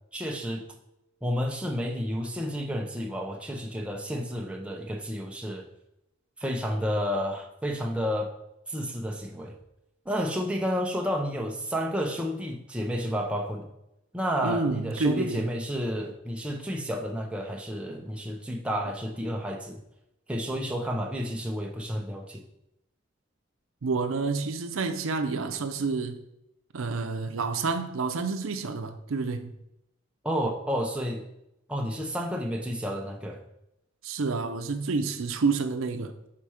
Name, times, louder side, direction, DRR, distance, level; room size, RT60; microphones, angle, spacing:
voice 1, 0.1-0.7 1.2-5.6 6.4-8.3 8.7-9.6 10.1-13.7 14.1-19.8 20.3-22.4 30.2-31.2 31.7-33.4, equal, 5° right, 0.6 m, -31 dB
voice 2, 14.4-15.5 23.8-26.2 26.7-29.6 34.0-36.1, right 4 dB, 85° right, 0.6 m, -29 dB
5.8 x 4.4 x 4.8 m
head